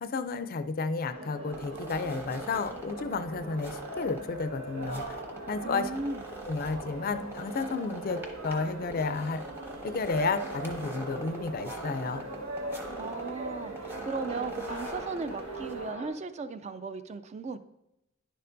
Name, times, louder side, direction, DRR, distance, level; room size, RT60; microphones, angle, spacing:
voice 1, 0.0-5.2 5.5-5.9 6.5-9.4 9.8-12.2, left 4 dB, 45° left, 10 dB, 0.4 m, -32 dB
sound 1, 1.1-16.1, right 1 dB, 85° right, 1.5 m, -40 dB
sound 2, 1.5-15.9, right 1 dB, 10° right, 0.8 m, -45 dB
voice 2, 5.6-6.2 13.0-17.6, right 4 dB, 30° right, 12 dB, 0.3 m, -36 dB
sound 3, 5.9-14.5, right 10 dB, 65° right, 0.7 m, -50 dB
10.5 x 6.7 x 2.6 m, 0.87 s
head